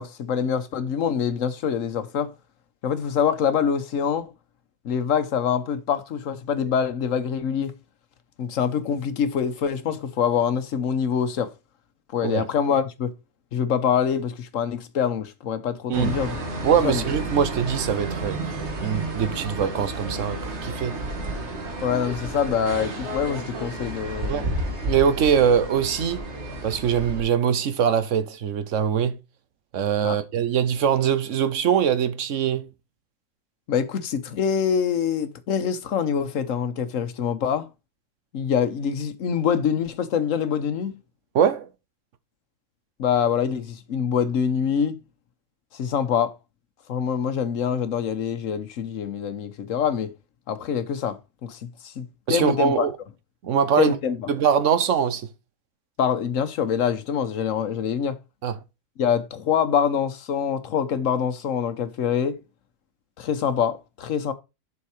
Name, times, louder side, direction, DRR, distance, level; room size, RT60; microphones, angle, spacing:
voice 1, 0.0-2.3 2.8-4.3 4.8-7.7 8.4-11.5 12.1-13.1 13.5-16.4 16.8-17.0 21.8-24.5 30.0-30.2 33.7-37.7 38.3-40.9 43.0-45.0 45.7-46.3 46.9-50.1 50.5-52.9 53.8-54.3 56.0-58.2 59.0-62.4 63.2-64.3, left 7 dB, 90° left, 1.3 m, -25 dB
sound 1, 15.9-27.2, right 2 dB, 60° right, 1.9 m, -31 dB
voice 2, 16.6-18.4 18.8-20.9 24.3-24.5 24.9-26.2 26.6-29.2 29.7-32.7 41.3-41.7 52.3-52.9 53.4-54.0 54.3-55.3 58.4-58.6, right 8 dB, 75° right, 1.2 m, -22 dB
7.2 x 4.5 x 4.9 m
omnidirectional pair, 1.3 m